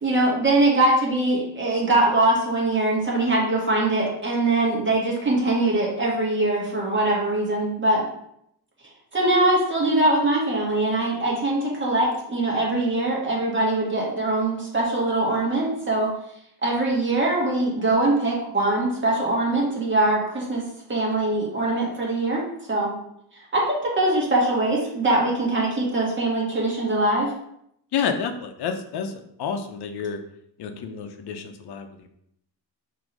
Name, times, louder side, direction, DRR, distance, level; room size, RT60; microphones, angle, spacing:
voice 1, 0.0-8.1 9.1-16.1 16.6-22.9 23.5-27.3, right 2 dB, 30° right, -4 dB, 1.5 m, -22 dB
voice 2, 27.9-29.1 29.4-30.2 30.6-32.1, left 6 dB, 70° left, 7 dB, 0.8 m, -29 dB
6.2 x 2.9 x 5.2 m, 0.74 s
cardioid pair, 150°, 41 cm